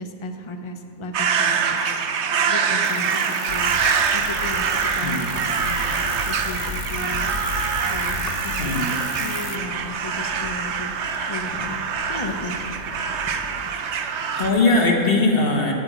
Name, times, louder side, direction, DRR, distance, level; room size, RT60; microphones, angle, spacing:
voice 1, 0.0-1.9 2.5-3.7 4.1-7.4 7.9-10.9 11.3-12.8 13.2-13.3, left 2 dB, 30° left, 5 dB, 0.6 m, -35 dB
sound 1, 1.1-14.5, right 6 dB, 60° right, 0.9 m, -24 dB
sound 2, 2.8-9.6, left 10 dB, 80° left, 1.1 m, -38 dB
sound 3, 3.5-13.7, left 3 dB, 65° left, 1.1 m, -37 dB
voice 2, 8.6-8.9 14.3-15.7, left 2 dB, 45° left, 1 dB, 1.3 m, -20 dB
9.7 x 7.4 x 9.2 m, 2.8 s
omnidirectional pair, 1.5 m